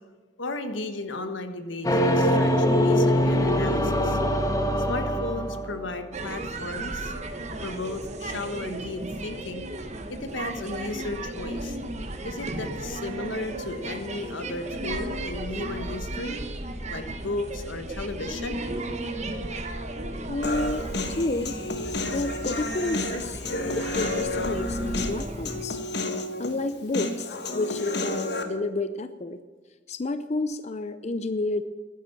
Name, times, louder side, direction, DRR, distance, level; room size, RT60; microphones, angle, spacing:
voice 1, 0.4-4.2 4.9-7.1 7.6-9.7 10.1-11.8 12.2-16.4 16.9-18.6, left 2 dB, 90° left, 8 dB, 1.3 m, -34 dB
sound 1, 1.8-6.0, equal, 20° left, 1.1 m, -23 dB
sound 2, 6.1-25.7, right 2 dB, 35° right, 1.2 m, -35 dB
voice 2, 20.3-21.6 22.1-25.8 26.4-29.4 29.9-31.6, left 2 dB, 35° left, 11 dB, 0.5 m, -30 dB
Human voice, 20.4-28.4, left 2 dB, 60° left, 1.4 m, -31 dB
11.5 x 10.0 x 7.0 m, 1.4 s
head